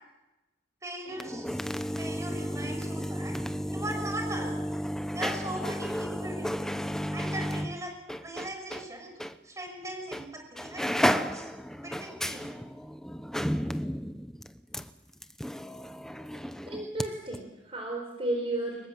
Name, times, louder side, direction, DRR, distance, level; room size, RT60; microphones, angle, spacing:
voice 1, 0.8-1.5 2.0-3.3 3.7-4.7 5.1-6.8 7.1-7.9 8.2-11.5 11.8-12.6, right 1 dB, 15° right, 3 dB, 6.0 m, -39 dB
sound 1, 1.1-8.9 9.2-9.3 10.1-10.3 10.5-17.1 17.3-17.4, equal, 5° left, 0.8 m, -33 dB
voice 2, 16.7-18.9, right 1 dB, 30° right, 1 dB, 4.2 m, -33 dB
25.5 x 22.0 x 7.7 m, 0.99 s
head